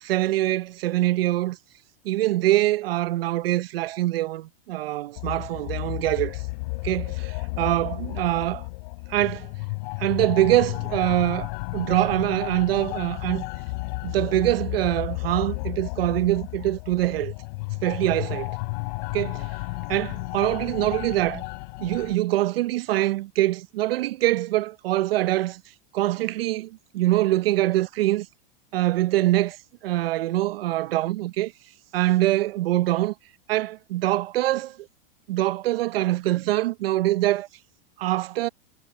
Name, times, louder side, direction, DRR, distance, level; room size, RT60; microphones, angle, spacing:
voice 1, 0.0-1.6 2.0-6.4 6.8-8.7 9.1-9.5 10.0-13.5 14.0-17.3 17.8-18.5 19.1-19.4 19.9-21.4 21.8-25.6 25.9-28.3 28.7-29.6 29.8-31.5 31.9-33.1 33.5-34.8 35.3-37.5 38.0-38.5, right 16 dB, 80° right, 0.7 m, -24 dB
sound 1, 5.2-22.2, left 27 dB, 50° left, 3.0 m, -33 dB
supercardioid pair, 160°, 29 cm